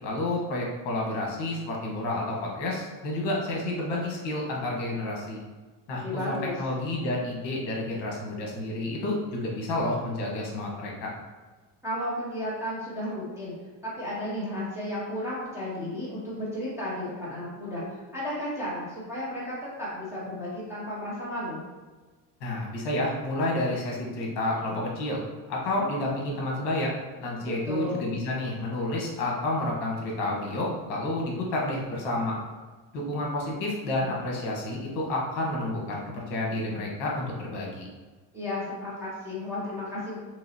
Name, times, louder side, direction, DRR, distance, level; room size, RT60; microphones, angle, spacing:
voice 1, 0.0-5.4 5.9-11.1 22.4-25.2 25.5-32.3 32.9-37.9, left 1 dB, 60° left, -2 dB, 1.2 m, -30 dB
voice 2, 5.9-6.6 11.8-13.6 13.8-21.6 27.5-28.0 38.3-40.2, left 1 dB, 5° right, -9 dB, 0.6 m, -33 dB
3.8 x 3.0 x 2.8 m, 1.3 s
cardioid pair, 155°, 48 cm